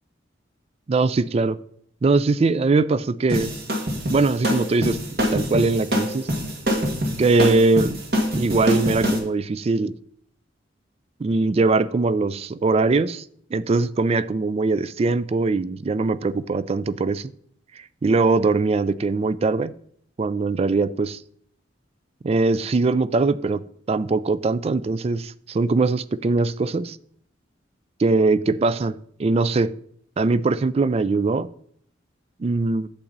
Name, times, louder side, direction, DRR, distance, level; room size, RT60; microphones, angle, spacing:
voice 1, 0.9-1.6 2.0-3.5 4.1-5.0 5.3-6.3 7.2-8.0 8.3-10.0 11.2-13.2 13.5-17.3 18.0-19.7 20.2-21.2 22.2-27.0 28.0-29.7 30.2-31.5 32.4-32.9, right 3 dB, 35° right, 0.3 m, -21 dB
sound 1, 3.3-9.2, equal, 55° right, 1.9 m, -24 dB
8.7 x 7.3 x 4.0 m
head